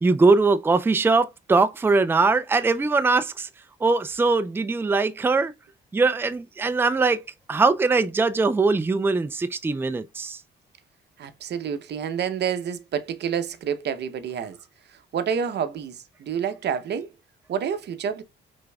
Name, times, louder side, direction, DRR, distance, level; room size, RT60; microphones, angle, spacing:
voice 1, 0.0-3.5 3.8-5.5 5.9-10.4, right 3 dB, 10° right, 0.4 m, -21 dB
voice 2, 11.2-14.6 14.9-17.1 17.5-18.2, right 7 dB, 60° right, 0.7 m, -28 dB
5.0 x 3.5 x 2.2 m
cardioid pair, 90°, 20 cm